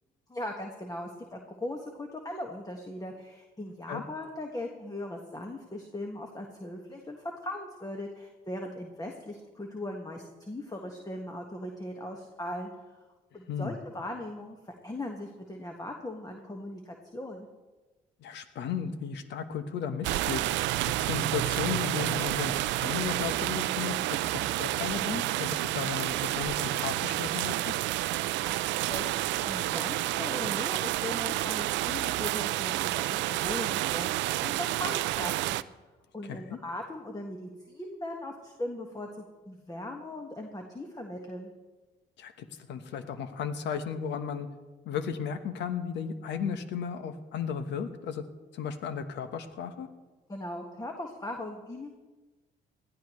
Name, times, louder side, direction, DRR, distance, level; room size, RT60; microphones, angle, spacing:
voice 1, 0.3-12.7 13.3-17.5 28.4-28.5 28.9-35.6 36.1-41.5 50.3-51.9, left 1 dB, 20° left, 2 dB, 1.7 m, -39 dB
voice 2, 18.2-27.7 36.2-36.6 42.2-44.5 44.8-48.2 48.5-49.9, left 7 dB, 75° left, 9 dB, 1.2 m, -35 dB
sound 1, 20.0-35.6, right 16 dB, 80° right, 0.4 m, -30 dB
20.0 x 14.0 x 3.2 m, 1.2 s
supercardioid pair, 60°, 19 cm